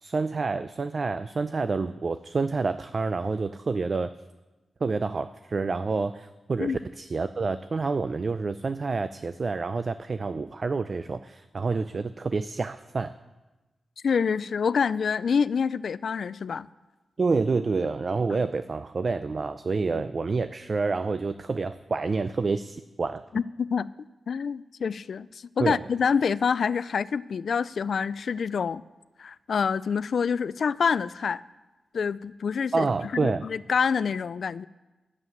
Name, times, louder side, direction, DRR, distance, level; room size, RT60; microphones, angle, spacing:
voice 1, 0.0-4.1 4.8-13.1 17.2-23.2 25.6-25.8 32.7-33.5, right 4 dB, 45° right, 12 dB, 0.4 m, -28 dB
voice 2, 14.0-16.7 23.3-23.9 24.3-25.3 25.6-28.8 29.2-31.4 31.9-32.9 33.1-34.7, left 6 dB, 70° left, 16 dB, 0.3 m, -26 dB
11.5 x 7.5 x 9.3 m, 1.1 s
wide cardioid pair, 90°, 0 cm